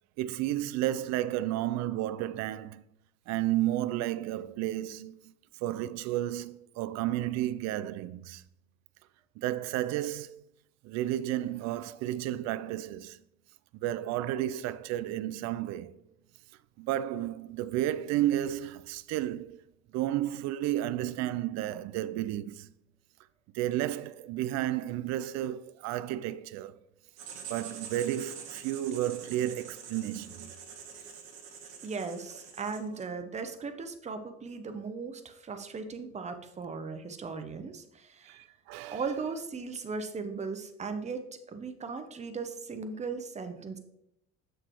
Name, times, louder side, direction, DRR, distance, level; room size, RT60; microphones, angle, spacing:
voice 1, 0.2-2.8 3.3-5.3 5.6-8.4 9.4-10.4 10.8-13.2 13.8-16.0 16.8-19.6 19.9-22.7 23.5-26.8 27.5-30.5 38.3-39.0, right 13 dB, 45° right, 0.4 m, -32 dB
Writing, 27.2-33.1, right 7 dB, 60° right, 1.4 m, -46 dB
voice 2, 31.8-38.4 38.9-43.8, right 4 dB, 15° right, 0.7 m, -37 dB
6.5 x 6.2 x 3.0 m
figure-of-eight pair, 65°, 42 cm